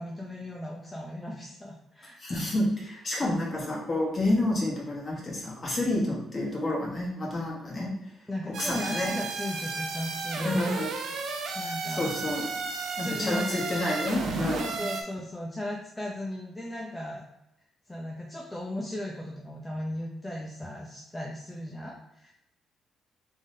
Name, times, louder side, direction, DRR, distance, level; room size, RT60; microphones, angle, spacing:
voice 1, 0.0-2.5 2.9-3.4 6.0-6.2 8.3-10.8 11.5-12.1 13.0-13.7 14.5-17.3 17.9-22.3, left 1 dB, 15° left, -2 dB, 0.6 m, -37 dB
voice 2, 2.2-7.9 8.6-9.1 10.4-10.9 12.0-12.5 13.0-14.8, left 1 dB, 35° left, -3 dB, 1.3 m, -29 dB
sound 1, 8.5-15.0, right 4 dB, 70° right, 0.6 m, -33 dB
3.6 x 3.4 x 2.7 m, 0.83 s
cardioid pair, 90°, 0 cm